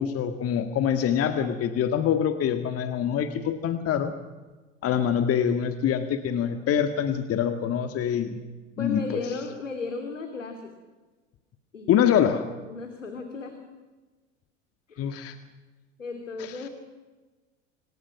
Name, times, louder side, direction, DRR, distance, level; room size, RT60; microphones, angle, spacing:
voice 1, 0.0-4.1 4.8-8.4 8.8-9.0 11.9-12.5 15.0-15.4 16.4-16.6, left 8 dB, 40° left, 8 dB, 1.9 m, -25 dB
voice 2, 8.8-10.7 11.7-12.0 12.7-13.6 14.9-15.4 16.0-16.7, left 4 dB, 90° left, 5 dB, 2.9 m, -35 dB
27.0 x 26.5 x 6.0 m, 1.3 s
hypercardioid pair, 85°, 37 cm